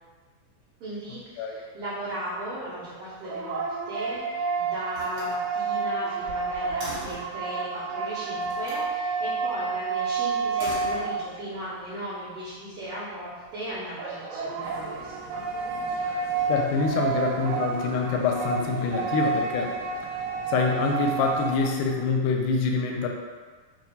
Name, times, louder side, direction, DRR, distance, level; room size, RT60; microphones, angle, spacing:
voice 1, 0.8-15.4, right 1 dB, 70° right, -12 dB, 1.4 m, -37 dB
sound 1, 3.0-11.7 14.0-21.7, right 4 dB, 90° right, 2.3 m, -30 dB
Slam, 4.0-4.4 4.9-7.4 8.4-8.9 10.4-11.5, right 2 dB, 50° right, 2.1 m, -42 dB
sound 2, 14.6-21.6, right 1 dB, 65° left, 0.8 m, -46 dB
voice 2, 16.5-19.8 20.0-20.2 20.5-23.1, left 4 dB, 80° left, 1 dB, 1.9 m, -25 dB
6.0 x 2.5 x 2.7 m, 1.4 s
omnidirectional pair, 3.9 m